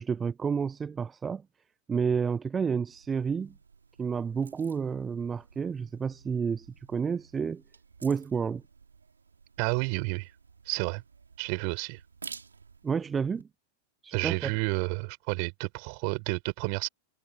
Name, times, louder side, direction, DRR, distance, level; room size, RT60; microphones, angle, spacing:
voice 1, 0.0-1.4 1.9-3.5 4.0-7.6 8.0-8.6 12.8-13.5 14.0-14.5, right 6 dB, 20° right, 1.0 m, -30 dB
sound 1, 2.9-13.4, right 5 dB, 75° right, 6.6 m, -52 dB
voice 2, 9.6-10.3 10.7-11.0 11.4-12.0 14.1-16.9, right 40 dB or more, 45° right, 7.0 m, -30 dB
figure-of-eight pair, 90°, 0 cm